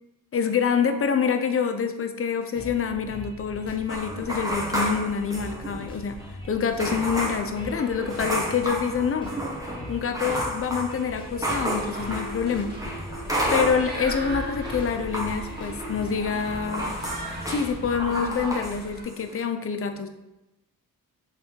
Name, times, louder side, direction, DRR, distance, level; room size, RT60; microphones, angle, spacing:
voice 1, 0.3-9.4 9.9-12.8 13.5-17.0 17.5-20.1, left 6 dB, 35° left, 7 dB, 0.6 m, -26 dB
sound 1, 2.5-18.0, equal, 15° left, 1.5 m, -40 dB
sound 2, 3.9-5.9 6.2-6.3 6.8-14.2 14.5-18.8 19.0-19.4, equal, 10° right, 1.2 m, -31 dB
sound 3, 11.3-19.0, right 1 dB, 25° right, 1.6 m, -39 dB
3.4 x 3.2 x 4.4 m, 0.97 s
cardioid pair, 55°, 38 cm